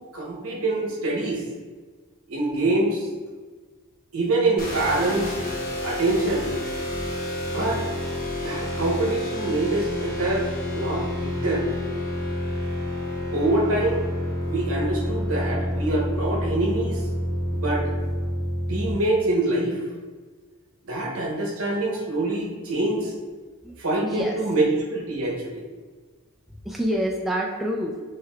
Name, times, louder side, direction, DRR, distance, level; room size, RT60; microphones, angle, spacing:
voice 1, 0.0-1.4 2.3-3.1 4.1-5.4 5.8-6.5 7.5-7.9 8.4-10.5 10.7-11.6 13.3-14.0 14.5-17.0 17.5-17.9 18.7-19.8 20.8-23.1 23.8-25.6, right 2 dB, 65° right, -1 dB, 1.0 m, -25 dB
sound 1, 4.6-18.9, left 1 dB, 45° left, 0.8 m, -29 dB
voice 2, 23.6-24.4 26.6-28.0, equal, ahead, -2 dB, 0.3 m, -27 dB
6.3 x 3.3 x 2.3 m, 1.4 s
head